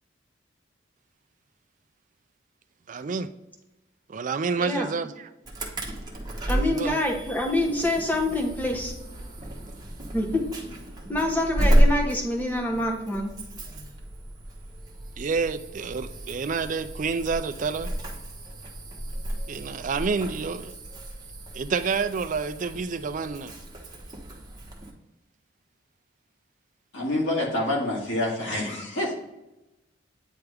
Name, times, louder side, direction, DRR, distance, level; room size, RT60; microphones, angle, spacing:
voice 1, 2.9-3.3 4.1-5.3 6.5-7.0 15.2-17.9 19.5-20.7 21.5-23.5, right 5 dB, 45° right, 12 dB, 0.4 m, -29 dB
Insect / Alarm, 5.5-24.9, right 1 dB, 20° right, 1.0 m, -31 dB
voice 2, 6.5-8.9 10.1-10.5 11.1-13.3, left 1 dB, 10° left, 1 dB, 1.0 m, -26 dB
voice 3, 26.9-29.1, left 1 dB, 80° left, -4 dB, 2.2 m, -27 dB
9.1 x 3.4 x 3.4 m, 0.95 s
head